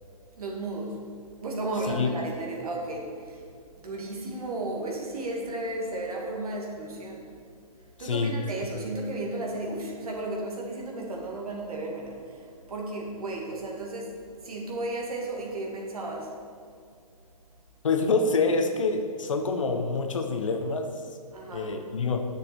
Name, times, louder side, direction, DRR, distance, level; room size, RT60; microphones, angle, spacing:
voice 1, 0.4-1.0 1.4-3.4 3.8-7.3 8.0-16.4 21.3-21.7, right 2 dB, 70° right, -1 dB, 2.1 m, -34 dB
voice 2, 8.0-8.3 17.8-20.9 21.5-22.3, left 4 dB, 55° left, 5 dB, 0.8 m, -26 dB
9.5 x 6.5 x 4.4 m, 2.3 s
hypercardioid pair, 180°, 20 cm